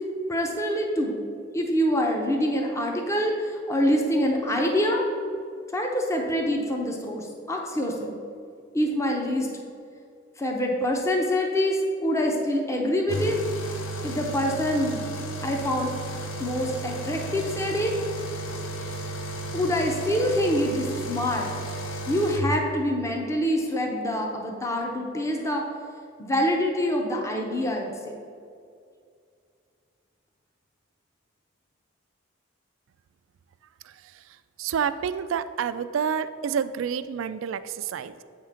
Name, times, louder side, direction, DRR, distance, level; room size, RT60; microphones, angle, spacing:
voice 1, 0.3-1.2 1.5-5.1 5.7-8.1 8.7-9.5 10.4-13.4 14.0-15.0 15.4-15.9 16.4-17.9 19.5-21.5 22.1-25.6 26.2-28.2, equal, 15° left, 1 dB, 0.6 m, -25 dB
sound 1, 13.1-22.4, right 1 dB, 90° left, 0.8 m, -34 dB
voice 2, 33.8-38.2, right 7 dB, 75° right, 13 dB, 0.3 m, -29 dB
8.0 x 3.7 x 5.7 m, 2.3 s
head